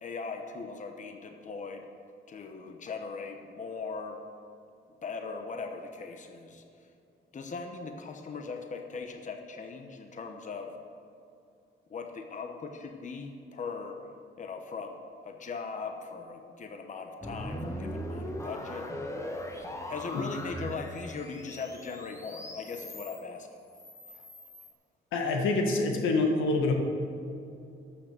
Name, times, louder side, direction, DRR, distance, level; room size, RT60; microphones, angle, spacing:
voice 1, 0.0-1.8 2.3-4.2 5.0-6.6 7.3-10.7 11.9-14.0 14.4-15.0 15.2-18.9 19.9-23.5 24.1-24.2, left 4 dB, 40° left, 5 dB, 1.0 m, -39 dB
sound 1, 17.2-23.2 23.7-24.7, equal, 15° left, 1.3 m, -40 dB
voice 2, 25.1-26.7, left 3 dB, 90° left, 2 dB, 1.6 m, -26 dB
13.0 x 6.2 x 6.7 m, 2.6 s
cardioid pair, 90°, 20 cm